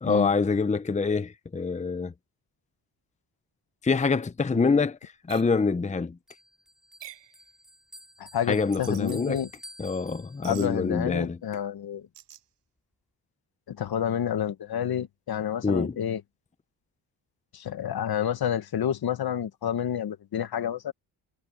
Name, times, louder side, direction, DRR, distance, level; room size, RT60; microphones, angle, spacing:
voice 1, 0.0-2.1 3.8-6.2 8.5-9.4 9.8-11.4 15.6-16.0, left 4 dB, 15° left, 0.8 m, -26 dB
sound 1, 5.3-5.5 7.0-7.3 8.7-9.2 10.4-10.7 12.1-12.5, right 13 dB, 90° right, 6.6 m, -45 dB
Bell, 6.3-10.8, equal, ahead, 4.9 m, -51 dB
voice 2, 8.2-9.5 10.5-12.1 13.7-16.2 17.5-20.9, left 9 dB, 60° left, 1.7 m, -29 dB
cardioid pair, 85°, 42 cm